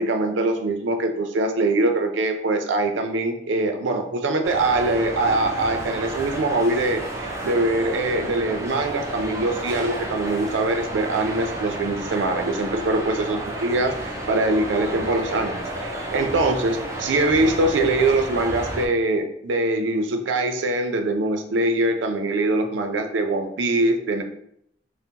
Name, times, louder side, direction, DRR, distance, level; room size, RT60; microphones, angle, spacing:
voice 1, 0.0-24.2, right 2 dB, 85° right, 5 dB, 0.4 m, -23 dB
sound 1, 4.4-18.9, right 1 dB, 15° right, 0.3 m, -31 dB
3.6 x 2.0 x 2.7 m, 0.71 s
head